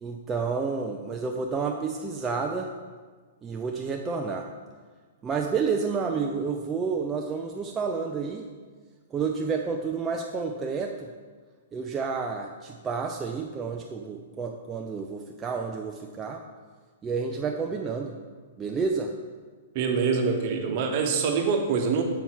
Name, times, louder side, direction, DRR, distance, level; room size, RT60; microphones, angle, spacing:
voice 1, 0.0-2.7 3.4-4.5 5.2-8.5 9.1-11.1 11.7-16.4 17.0-18.2 18.6-19.1, right 5 dB, 20° right, 2 dB, 0.4 m, -30 dB
voice 2, 19.7-22.0, right 5 dB, 45° right, 4 dB, 1.1 m, -25 dB
7.0 x 5.5 x 4.7 m, 1.5 s
hypercardioid pair, 135°, 0 cm